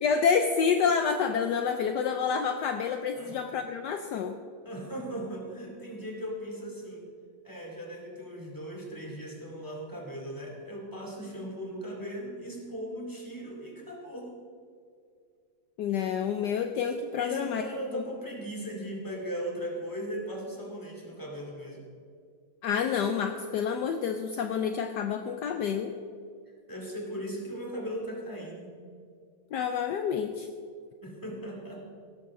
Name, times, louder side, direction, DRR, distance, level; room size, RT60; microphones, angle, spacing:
voice 1, 0.0-4.4 15.8-17.6 17.9-18.0 22.6-25.9 29.5-30.5, left 6 dB, 70° left, 6 dB, 1.2 m, -28 dB
voice 2, 4.6-7.1 7.4-14.3 17.1-21.8 26.7-28.8 31.0-31.8, equal, 10° left, -1 dB, 2.5 m, -38 dB
17.0 x 13.0 x 3.7 m, 2.2 s
omnidirectional pair, 2.1 m